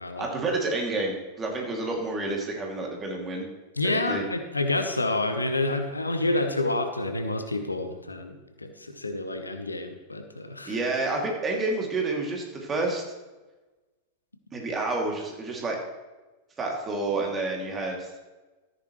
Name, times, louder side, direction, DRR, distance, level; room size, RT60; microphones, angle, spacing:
voice 1, 0.2-3.5 3.8-4.2 10.7-13.0 14.5-15.8 16.6-18.1, right 2 dB, 20° right, 0 dB, 2.5 m, -29 dB
voice 2, 3.8-10.8, left 2 dB, 80° left, 7 dB, 1.0 m, -28 dB
13.5 x 9.6 x 3.1 m, 1.2 s
figure-of-eight pair, 90°, 0 cm